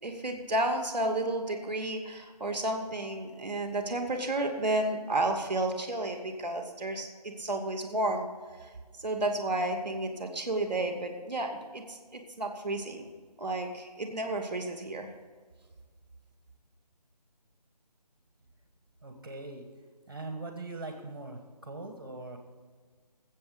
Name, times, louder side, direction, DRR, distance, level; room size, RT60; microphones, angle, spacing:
voice 1, 0.0-8.3 9.0-13.1 13.4-15.1, right 2 dB, 15° right, 3 dB, 1.5 m, -32 dB
voice 2, 19.0-19.6 20.1-22.4, right 2 dB, 35° right, 4 dB, 1.6 m, -41 dB
20.0 x 8.1 x 5.2 m, 1.5 s
figure-of-eight pair, 180°, 21 cm